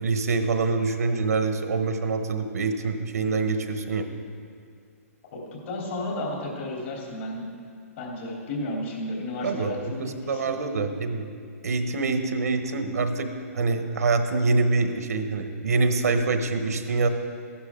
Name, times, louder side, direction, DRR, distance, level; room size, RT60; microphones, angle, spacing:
voice 1, 0.0-4.1 9.4-11.3 11.6-13.3 13.5-17.1, right 3 dB, 80° right, 8 dB, 1.1 m, -25 dB
voice 2, 5.3-7.4 8.0-10.8, left 1 dB, 50° left, -2 dB, 3.4 m, -33 dB
14.5 x 11.5 x 3.8 m, 2.2 s
hypercardioid pair, 150°, 8 cm